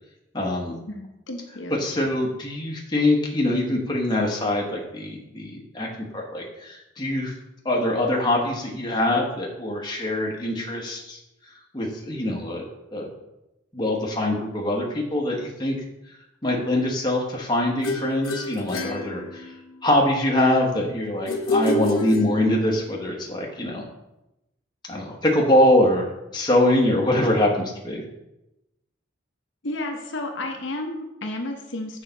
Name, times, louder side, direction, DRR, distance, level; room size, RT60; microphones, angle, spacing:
voice 1, 0.3-0.8 1.8-5.9 6.1-7.3 7.6-11.2 11.7-12.6 12.9-13.1 13.7-15.7 16.4-19.5 19.8-23.8 24.9-26.1 26.3-28.0, left 1 dB, 20° left, -1 dB, 1.0 m, -23 dB
voice 2, 0.9-1.8 29.6-32.0, left 1 dB, 60° left, 2 dB, 0.9 m, -32 dB
sound 1, 17.8-19.8 21.3-22.8, left 1 dB, 85° left, 0.9 m, -28 dB
6.5 x 5.4 x 4.0 m, 0.92 s
head